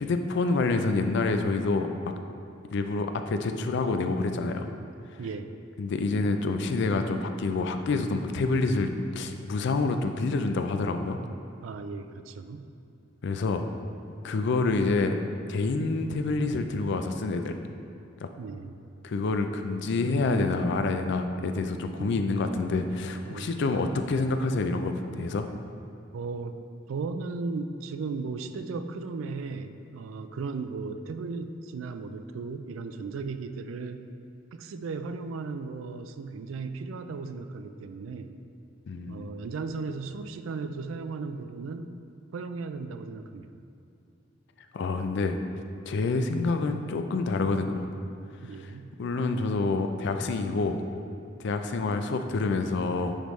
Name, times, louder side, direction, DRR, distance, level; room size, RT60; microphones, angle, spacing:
voice 1, 0.0-2.1 2.7-4.7 5.8-8.9 9.2-11.2 13.2-13.6 14.2-15.2 15.5-17.6 18.2-18.3 19.0-25.5 38.9-39.3 44.7-45.4 45.9-47.8 49.0-50.8 51.4-53.2, left 3 dB, 60° left, 7 dB, 0.4 m, -27 dB
voice 2, 5.2-5.6 11.6-12.6 18.4-18.9 22.0-22.3 23.2-23.7 26.1-26.6 26.9-34.1 34.5-38.4 39.1-41.9 42.3-43.5 48.4-48.9, right 4 dB, 90° right, 9 dB, 0.4 m, -36 dB
9.9 x 3.5 x 3.1 m, 2.5 s
head